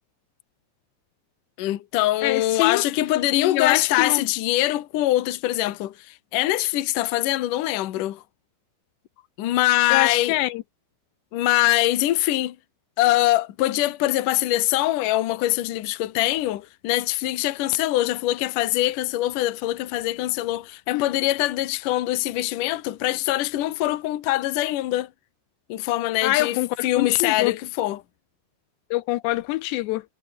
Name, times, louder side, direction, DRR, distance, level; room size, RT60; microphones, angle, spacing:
voice 1, 1.6-8.2 9.4-10.4 11.3-12.6 13.0-25.1 25.7-28.0, left 16 dB, 60° left, 2.5 m, -23 dB
voice 2, 2.2-2.8 3.3-4.3 9.9-10.6 20.9-21.0 26.2-27.5 28.9-30.0, left 18 dB, 85° left, 2.9 m, -24 dB
omnidirectional pair, 5.1 m